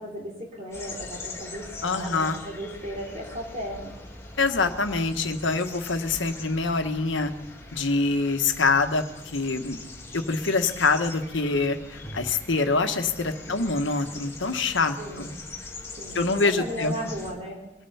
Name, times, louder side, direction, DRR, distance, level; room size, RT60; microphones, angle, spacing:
voice 1, 0.0-3.9 13.5-13.8 15.0-15.4 16.0-17.6, equal, 35° right, -2 dB, 3.1 m, -36 dB
sound 1, 0.7-17.3, left 3 dB, 15° left, 2.0 m, -42 dB
voice 2, 1.8-2.4 4.4-7.3 7.7-9.8 10.1-15.3 16.1-17.0, left 3 dB, 85° left, 7 dB, 1.3 m, -25 dB
22.0 x 9.3 x 5.6 m, 1.0 s
head